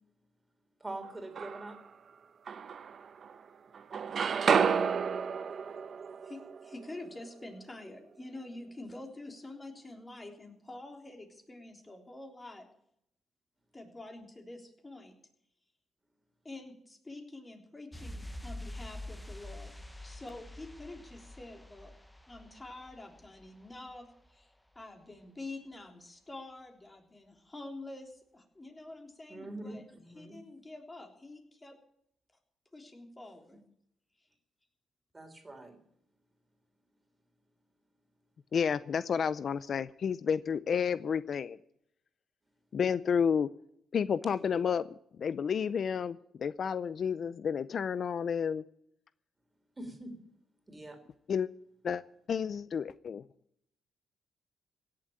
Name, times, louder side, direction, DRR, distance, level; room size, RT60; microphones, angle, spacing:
voice 1, 0.8-1.8 29.3-30.4 35.1-35.8 49.8-50.2 50.7-51.0, right 2 dB, 20° right, 7 dB, 3.5 m, -44 dB
sound 1, 1.0-1.9 2.5-3.5 3.7-7.7, right 6 dB, 55° right, 0.9 m, -32 dB
voice 2, 6.2-12.7 13.7-15.2 16.4-19.7 20.0-21.9 22.3-29.8 30.1-31.8 32.7-33.6, left 2 dB, 20° left, 3 dB, 3.5 m, -47 dB
sound 2, 17.9-24.4 24.7-24.8, left 1 dB, 5° left, 1.2 m, -47 dB
voice 3, 38.5-41.6 42.7-43.5 43.9-44.9 45.2-48.6 51.3-51.5 51.8-52.0 52.3-53.2, left 7 dB, 55° left, 16 dB, 0.5 m, -31 dB
17.0 x 7.6 x 8.9 m, 0.72 s
cardioid pair, 80°, 0 cm